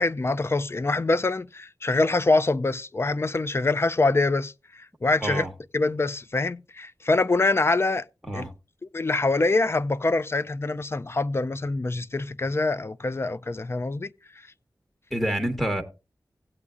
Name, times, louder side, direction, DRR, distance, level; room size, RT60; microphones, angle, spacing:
voice 1, 0.0-5.5 5.7-8.0 8.3-8.5 8.9-14.1, left 3 dB, 35° left, 0.4 m, -25 dB
voice 2, 15.1-15.8, right 1 dB, 5° left, 1.2 m, -27 dB
16.5 x 8.4 x 2.4 m
wide cardioid pair, 70°, 7 cm